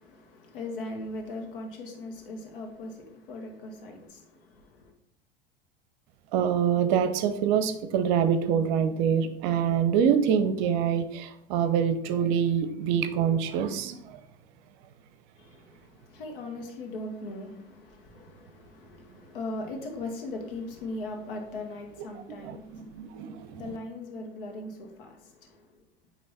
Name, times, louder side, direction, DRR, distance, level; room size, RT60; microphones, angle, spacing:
voice 1, 0.0-4.9 15.4-25.7, left 2 dB, 65° left, 1.5 m, -39 dB
voice 2, 6.3-14.2 22.4-23.8, right 8 dB, 50° right, 0.7 m, -25 dB
8.7 x 3.0 x 4.1 m
figure-of-eight pair, 85°, 29 cm